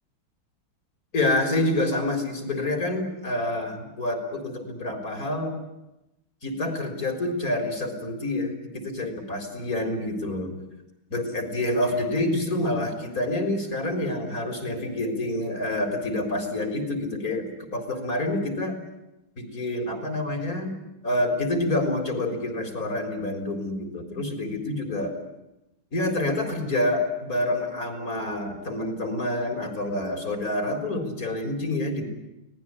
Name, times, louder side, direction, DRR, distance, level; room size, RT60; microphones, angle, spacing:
voice 1, 1.1-5.5 6.4-10.5 11.1-17.5 17.7-18.7 19.4-20.7 21.0-25.1 25.9-32.1, left 1 dB, 40° left, 6 dB, 4.6 m, -27 dB
24.5 x 19.0 x 9.8 m, 0.93 s
omnidirectional pair, 2.2 m